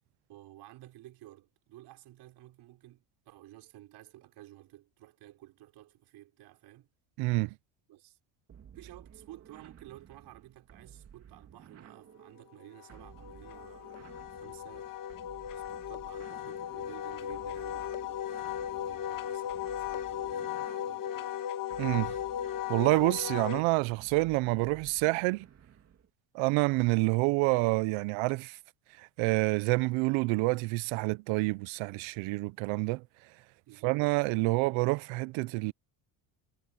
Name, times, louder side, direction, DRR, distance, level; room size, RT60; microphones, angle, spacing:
voice 1, 0.3-6.9 7.9-8.2 8.8-14.9 15.5-21.4 33.7-34.0, right 15 dB, 55° right, 5.2 m, -53 dB
voice 2, 7.2-7.5 21.8-22.2 22.7-25.5 26.3-28.6 29.2-33.0 33.8-35.7, right 24 dB, 75° right, 0.7 m, -28 dB
sound 1, 8.5-26.1, right 8 dB, 30° right, 2.6 m, -55 dB
Wind instrument woodwind instrument, 12.6-23.6, left 10 dB, 45° left, 2.3 m, -37 dB
cardioid pair, 160°, 46 cm